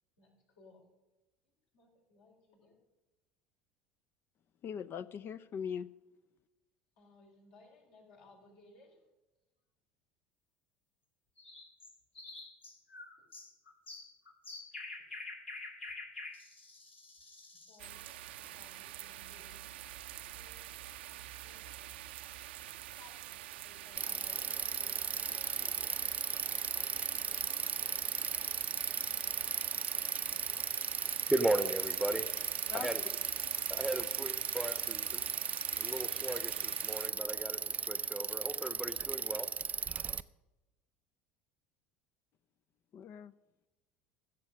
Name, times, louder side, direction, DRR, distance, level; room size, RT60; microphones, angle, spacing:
voice 1, 1.7-2.8 7.0-9.0 13.2-13.3 17.7-19.7 20.3-20.6 21.4-21.7 23.0-24.7 25.3-25.9 26.4-27.8, left 3 dB, 60° left, 0 dB, 4.0 m, -61 dB
voice 2, 4.6-5.9 32.7-32.9 42.9-43.3, left 7 dB, 40° left, 16 dB, 0.4 m, -40 dB
sound 1, 11.4-17.9, left 3 dB, 80° left, 1.9 m, -47 dB
sound 2, 17.8-37.1, right 14 dB, 70° right, 0.6 m, -46 dB
Bicycle, 24.0-40.2, right 6 dB, 25° right, 0.4 m, -36 dB
voice 3, 31.3-32.3 32.7-33.0 33.7-35.2 35.7-39.5, right 1 dB, 5° right, 11 dB, 0.9 m, -36 dB
15.0 x 7.3 x 6.2 m, 1.1 s
figure-of-eight pair, 65°, 6 cm